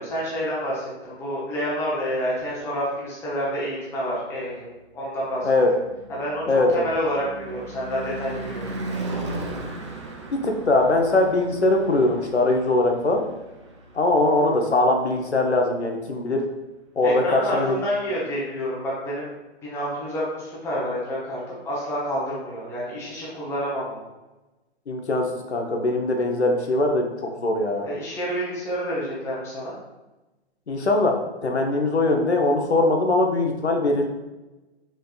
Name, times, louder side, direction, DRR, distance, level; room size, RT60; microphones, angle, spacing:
voice 1, 0.0-4.7 4.9-5.5 6.1-6.4 6.7-8.7 17.0-19.3 19.6-24.0 27.8-29.7, equal, 10° left, -7 dB, 0.8 m, -28 dB
Car passing by / Truck / Engine, 5.0-15.2, right 2 dB, 30° right, 0.4 m, -37 dB
voice 2, 6.5-6.9 10.3-13.2 13.9-16.5 17.0-17.7 24.9-27.9 30.7-34.1, left 2 dB, 80° left, 2 dB, 0.8 m, -21 dB
4.3 x 3.6 x 2.3 m, 1.1 s
figure-of-eight pair, 125°, 33 cm